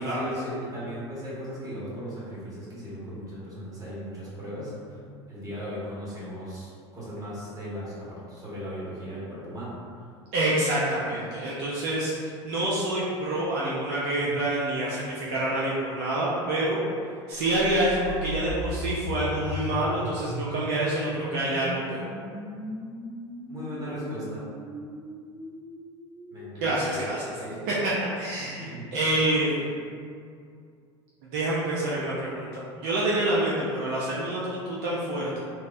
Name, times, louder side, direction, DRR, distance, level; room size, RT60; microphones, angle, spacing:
voice 1, 0.0-5.0 5.3-9.7 23.5-24.5 26.3-26.9 27.2-27.6 28.3-28.9, equal, 25° right, -8 dB, 1.3 m, -37 dB
voice 2, 10.3-16.8 17.3-22.1 26.6-27.3 27.7-29.7 31.3-35.4, right 1 dB, 60° right, -7 dB, 0.5 m, -27 dB
sound 1, 17.5-27.4, left 1 dB, 35° left, 0.9 m, -37 dB
3.3 x 2.1 x 2.5 m, 2.3 s
hypercardioid pair, 85°, 15 cm